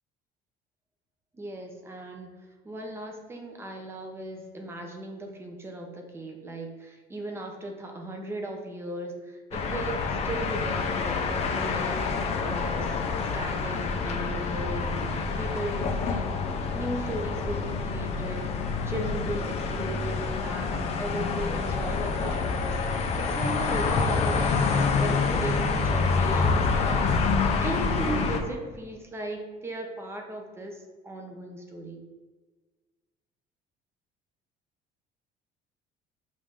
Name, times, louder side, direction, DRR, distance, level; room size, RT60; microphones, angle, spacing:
voice 1, 1.3-2.3 2.6-12.1 12.4-12.9 13.3-15.1 15.4-16.4 16.7-18.5 18.8-22.7 23.2-24.6 25.0-27.2 27.6-30.7 31.0-32.0, right 1 dB, 15° right, 2 dB, 0.6 m, -37 dB
sound 1, 9.5-28.4, left 4 dB, 40° left, 0.5 m, -27 dB
5.3 x 2.5 x 3.3 m, 1.4 s
cardioid pair, 155°, 17 cm